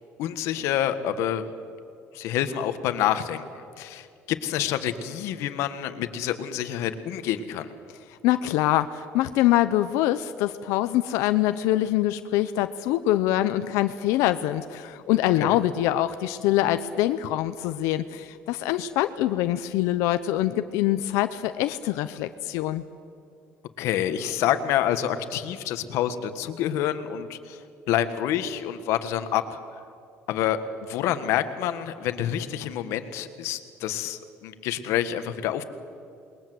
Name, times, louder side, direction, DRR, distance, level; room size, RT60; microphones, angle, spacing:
voice 1, 0.2-1.5 2.1-7.7 15.3-15.6 23.8-29.6 30.3-35.6, left 11 dB, 70° left, 10 dB, 1.5 m, -28 dB
voice 2, 8.2-22.8, left 14 dB, 90° left, 11 dB, 0.8 m, -24 dB
28.0 x 21.5 x 7.9 m, 2.5 s
cardioid pair, 160°, 5 cm